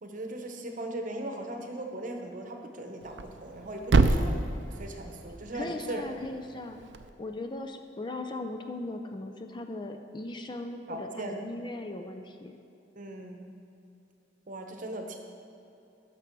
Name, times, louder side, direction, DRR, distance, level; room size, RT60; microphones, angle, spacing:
voice 1, 0.0-4.4 4.7-6.0 10.9-11.4 13.0-13.4 14.5-15.2, right 1 dB, 45° right, 3 dB, 1.0 m, -38 dB
Thump thud, 3.0-7.1, right 3 dB, 70° right, 0.5 m, -29 dB
voice 2, 5.5-6.8 7.2-12.5, left 2 dB, 25° left, 5 dB, 0.4 m, -38 dB
12.5 x 6.1 x 4.6 m, 2.8 s
head